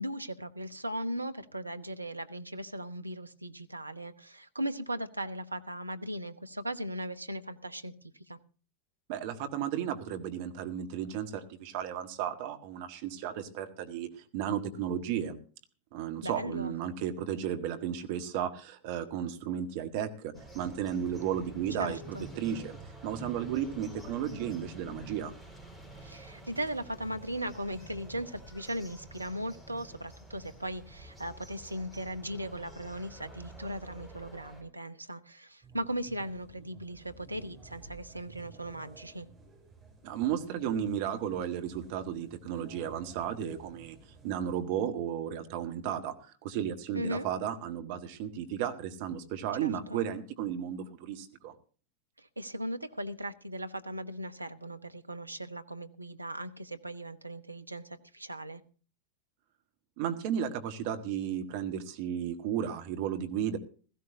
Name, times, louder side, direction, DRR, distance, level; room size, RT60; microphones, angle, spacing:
voice 1, 0.0-7.9 8.3-8.4 16.2-16.7 21.7-22.3 26.0-39.3 46.9-47.3 49.6-50.1 52.2-58.6, right 1 dB, 85° right, 10 dB, 0.9 m, -38 dB
voice 2, 9.1-15.4 15.9-22.0 22.4-22.8 23.0-25.3 40.0-44.0 44.2-51.5 60.0-63.6, right 9 dB, 50° right, 7 dB, 1.7 m, -34 dB
sound 1, 20.3-34.6, right 2 dB, ahead, 4.6 m, -49 dB
sound 2, 35.6-44.6, right 3 dB, 20° right, 6.2 m, -54 dB
16.5 x 15.5 x 2.8 m, 0.38 s
figure-of-eight pair, 90°, 0 cm